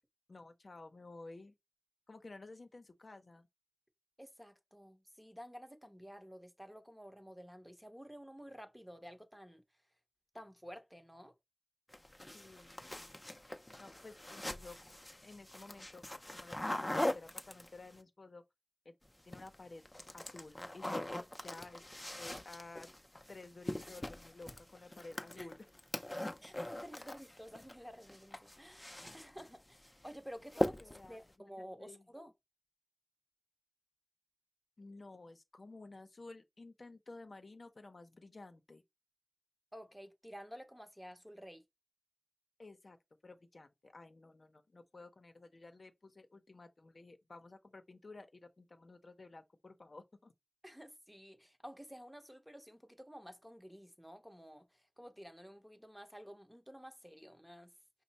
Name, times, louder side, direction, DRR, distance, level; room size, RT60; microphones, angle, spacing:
voice 1, 0.3-1.5 2.1-3.5 12.3-13.1 13.8-14.8 15.2-16.0 16.3-18.4 18.8-18.9 19.2-19.8 20.1-21.1 21.4-21.8 22.2-22.9 23.3-25.6 27.0-27.1 30.5-31.5 31.8-32.0 34.8-38.8 42.6-43.0 43.2-50.3, left 3 dB, 80° left, 0.6 m, -53 dB
voice 2, 4.2-9.6 10.3-11.3 21.5-21.6 25.4-25.5 26.4-32.3 39.7-41.6 50.6-57.7, equal, 5° right, 0.8 m, -52 dB
sound 1, 11.9-18.0 19.1-19.6 19.9-27.7 28.0-29.5 29.8-30.1 30.5-31.1, left 1 dB, 25° left, 0.5 m, -41 dB
5.3 x 2.0 x 4.0 m
wide cardioid pair, 55°, 0 cm